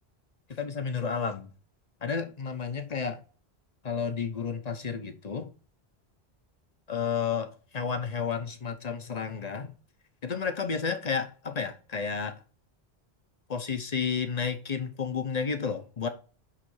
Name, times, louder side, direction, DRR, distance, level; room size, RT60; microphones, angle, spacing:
voice 1, 0.5-1.5 2.0-3.2 3.8-5.5 6.9-9.7 10.2-12.4 13.5-16.1, left 6 dB, 40° left, 0.9 m, -31 dB
9.9 x 3.3 x 4.8 m
omnidirectional pair, 1.1 m